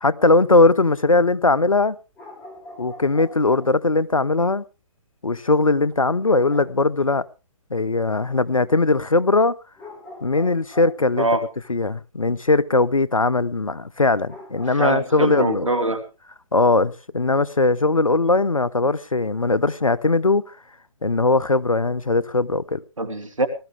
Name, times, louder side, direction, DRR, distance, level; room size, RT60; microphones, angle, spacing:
voice 1, 0.0-2.0 2.8-4.6 5.2-7.2 7.7-9.5 10.2-11.3 11.7-15.7 16.5-20.6 21.0-22.8, left 3 dB, 90° left, 0.8 m, -19 dB
sound 1, 2.1-3.8 6.2-7.0 9.8-11.3 14.3-15.6, left 1 dB, 10° left, 4.5 m, -42 dB
voice 2, 11.2-11.5 14.7-16.0 23.0-23.5, right 2 dB, 75° right, 2.8 m, -23 dB
19.5 x 12.0 x 3.4 m
figure-of-eight pair, 135°, 17 cm